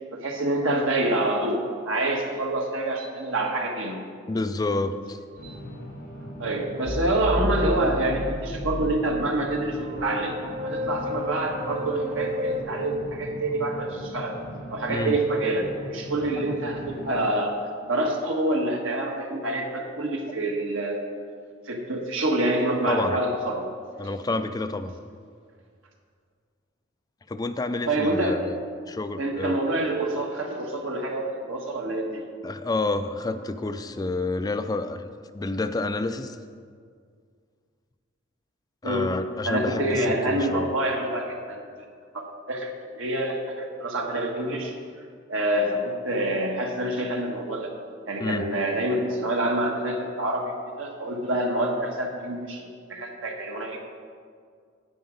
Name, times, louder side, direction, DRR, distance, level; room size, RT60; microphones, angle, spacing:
voice 1, 0.1-4.0 5.4-5.6 6.4-10.3 10.6-14.3 14.7-17.5 17.9-21.0 21.7-23.7 27.9-28.4 29.2-32.3 38.8-39.1 39.4-41.6 42.1-44.7 45.3-47.7 48.1-53.8, right 1 dB, 85° right, 1 dB, 1.5 m, -27 dB
voice 2, 4.3-5.2 9.0-9.1 14.9-15.2 16.4-16.5 22.9-23.2 24.0-24.9 27.3-28.6 28.9-29.6 32.4-36.4 38.8-40.7 48.2-48.7, left 2 dB, 20° left, 10 dB, 0.3 m, -29 dB
sound 1, 5.3-17.1, equal, 55° left, 2.9 m, -39 dB
sound 2, 6.8-12.6, left 1 dB, 35° right, 0.8 m, -32 dB
9.4 x 8.8 x 5.1 m, 2.1 s
head